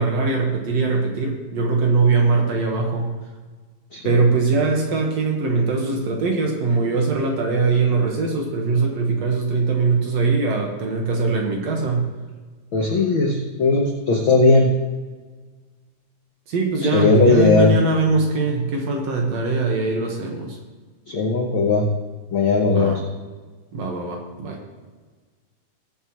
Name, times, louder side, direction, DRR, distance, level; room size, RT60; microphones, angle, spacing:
voice 1, 0.0-3.2 4.0-12.1 16.5-20.6 22.7-23.0 23.7-24.6, right 3 dB, 60° right, 1 dB, 2.3 m, -21 dB
voice 2, 12.7-14.7 16.9-17.8 21.1-21.9 22.3-23.0, left 3 dB, 70° left, 1 dB, 1.2 m, -17 dB
20.0 x 7.8 x 3.0 m, 1.4 s
omnidirectional pair, 3.9 m